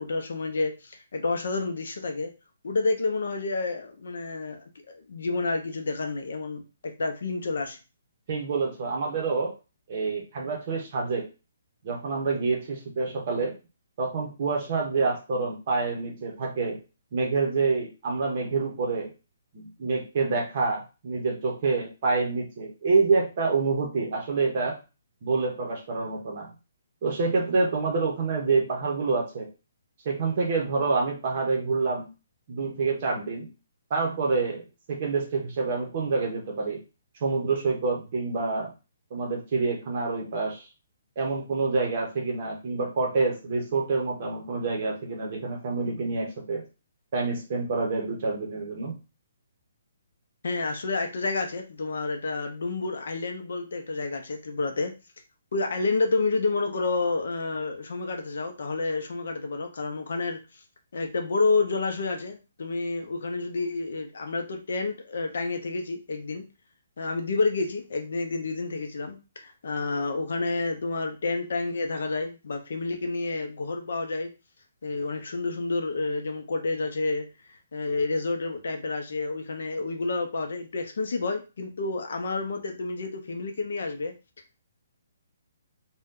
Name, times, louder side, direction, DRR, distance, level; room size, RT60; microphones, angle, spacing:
voice 1, 0.0-2.3 2.6-7.8 50.4-54.9 55.5-60.4 60.9-66.4 67.0-74.3 74.8-77.3 77.7-84.1, left 3 dB, 60° left, 4 dB, 0.6 m, -29 dB
voice 2, 8.3-9.6 9.9-11.3 11.8-13.6 14.0-16.8 17.1-19.1 19.5-24.8 25.2-26.5 27.0-29.5 30.0-32.1 32.5-33.5 33.9-36.8 37.2-38.7 39.1-40.7 41.2-46.7 47.1-49.0, right 4 dB, 30° right, 0 dB, 0.7 m, -27 dB
2.6 x 2.2 x 3.5 m, 0.30 s
hypercardioid pair, 180°, 0 cm